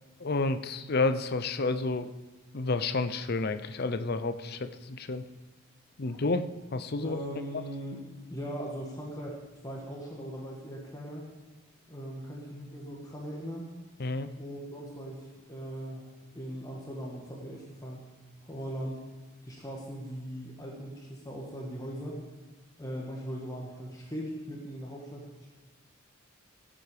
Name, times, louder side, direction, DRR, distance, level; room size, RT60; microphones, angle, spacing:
voice 1, 0.2-2.1 2.5-5.2 6.0-7.2 14.0-14.3, left 3 dB, 45° left, 10 dB, 0.6 m, -30 dB
voice 2, 7.0-8.0 8.3-11.3 11.9-13.7 14.4-18.1 18.4-19.0 19.4-22.2 22.8-25.5, equal, 15° left, -2 dB, 1.4 m, -39 dB
16.5 x 7.7 x 4.9 m, 1.3 s
head